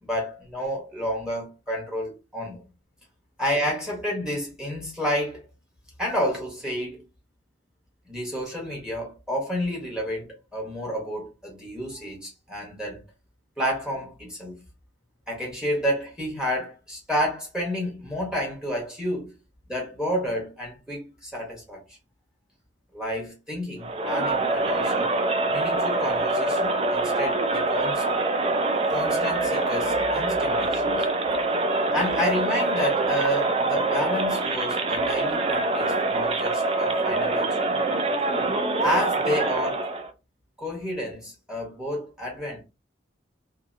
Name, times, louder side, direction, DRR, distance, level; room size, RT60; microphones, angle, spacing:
voice 1, 0.0-2.6 3.4-5.4 6.0-7.0 8.1-13.0 13.6-14.6 15.3-19.3 19.7-22.0 22.9-25.2 25.5-28.0 28.9-31.1 31.9-37.9 38.8-39.9 40.6-42.6, equal, 5° right, 1.0 m, -30 dB
Crowd, 23.8-40.1, right 2 dB, 30° right, 0.4 m, -25 dB
2.7 x 2.5 x 2.5 m
head